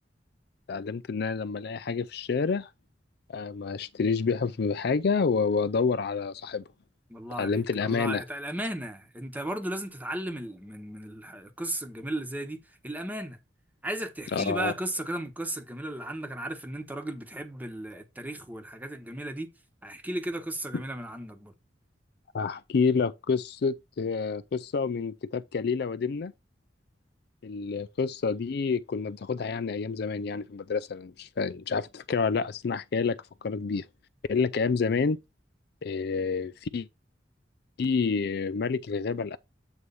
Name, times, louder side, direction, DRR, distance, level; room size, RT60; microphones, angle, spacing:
voice 1, 0.7-2.7 3.3-6.6 7.4-8.2 14.3-14.7 22.3-26.3 27.4-33.9 34.3-35.2 35.8-36.9 37.8-39.4, left 5 dB, 60° left, 0.4 m, -28 dB
voice 2, 7.1-13.4 13.8-19.5 19.8-21.5, right 1 dB, 10° right, 1.1 m, -35 dB
8.1 x 3.2 x 5.4 m
head